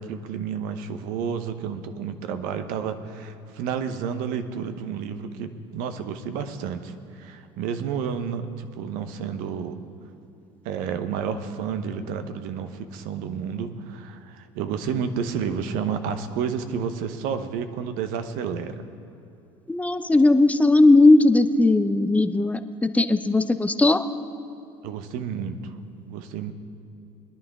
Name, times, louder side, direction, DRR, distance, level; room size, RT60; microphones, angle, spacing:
voice 1, 0.0-9.8 10.6-18.7 24.8-25.7 26.0-26.5, right 7 dB, 70° right, 9 dB, 1.0 m, -30 dB
voice 2, 19.7-22.6 22.9-24.1, left 2 dB, 10° left, 10 dB, 0.7 m, -17 dB
21.5 x 11.0 x 3.6 m, 2.8 s
hypercardioid pair, 70°, 15 cm